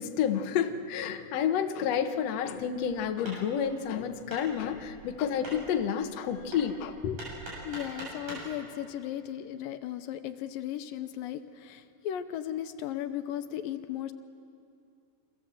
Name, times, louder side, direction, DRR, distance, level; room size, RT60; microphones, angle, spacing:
voice 1, 0.0-7.2, left 8 dB, 60° left, 6 dB, 1.8 m, -30 dB
Hammer, 2.5-8.5, right 1 dB, 65° right, 8.9 m, -45 dB
voice 2, 7.7-14.1, left 11 dB, 80° left, 8 dB, 2.5 m, -36 dB
27.5 x 25.0 x 7.7 m, 2.4 s
omnidirectional pair, 4.1 m